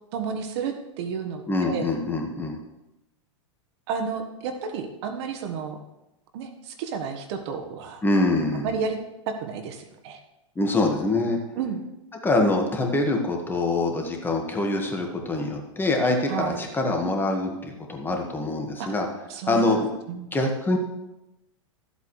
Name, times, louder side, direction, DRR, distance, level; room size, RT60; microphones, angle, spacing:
voice 1, 0.1-1.8 3.9-5.8 6.3-8.0 8.6-9.0 9.3-10.2 11.6-11.8 16.3-16.6 18.8-18.9 19.3-20.3, right 6 dB, 55° right, 6 dB, 1.3 m, -31 dB
voice 2, 1.5-2.6 8.0-8.7 10.6-11.4 12.2-19.1 19.5-19.9 20.3-20.8, left 2 dB, 10° left, 2 dB, 1.6 m, -24 dB
13.5 x 8.2 x 3.2 m, 0.92 s
hypercardioid pair, 110°, 16 cm